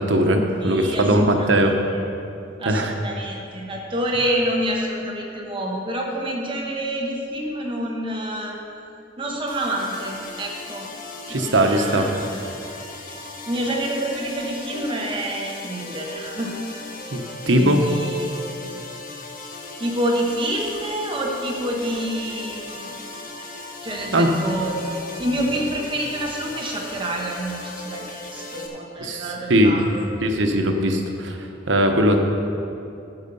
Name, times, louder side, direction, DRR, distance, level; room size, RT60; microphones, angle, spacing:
voice 1, 0.0-1.7 2.6-2.9 11.3-12.1 17.1-17.8 24.1-24.3 29.0-29.8 30.2-31.4 31.7-32.2, right 1 dB, 85° right, 4 dB, 1.0 m, -19 dB
voice 2, 0.6-2.0 2.6-8.6 9.2-10.9 11.3-12.2 13.5-16.6 17.5-18.8 19.8-22.9 23.8-30.1, right 1 dB, 30° right, -1 dB, 1.1 m, -28 dB
sound 1, 9.5-28.7, left 3 dB, 50° left, 1.2 m, -37 dB
14.0 x 5.6 x 5.5 m, 2.7 s
head